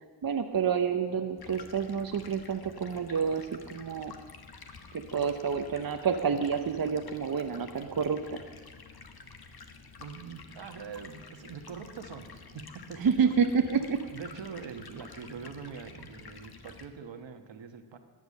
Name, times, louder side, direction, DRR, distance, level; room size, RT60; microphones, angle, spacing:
voice 1, 0.2-4.1 4.9-8.4 13.0-14.0, right 6 dB, 45° right, 5 dB, 1.0 m, -29 dB
Stream, 1.4-16.8, left 5 dB, 50° left, 1.4 m, -50 dB
voice 2, 10.0-13.1 14.1-18.0, right 6 dB, 65° right, 6 dB, 1.4 m, -43 dB
13.5 x 9.3 x 6.6 m, 1.4 s
supercardioid pair, 45°, 47 cm